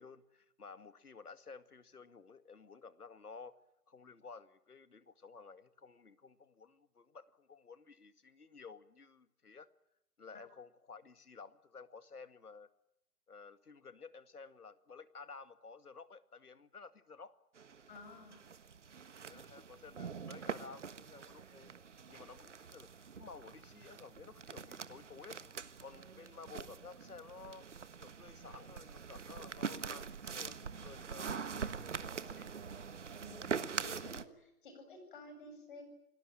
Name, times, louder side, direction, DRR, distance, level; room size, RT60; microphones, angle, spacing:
voice 1, 0.0-3.6 3.9-9.7 10.2-12.7 13.3-17.4 19.3-21.7 22.1-22.9 23.1-25.5 25.8-27.6 28.0-32.5, left 5 dB, 70° left, 12 dB, 2.2 m, -53 dB
sound 1, 17.6-34.2, right 6 dB, 50° right, 1.5 m, -44 dB
voice 2, 17.9-18.4 33.2-35.8, left 2 dB, 35° left, 7 dB, 7.8 m, -53 dB
28.5 x 19.0 x 9.0 m, 0.86 s
figure-of-eight pair, 160°, 46 cm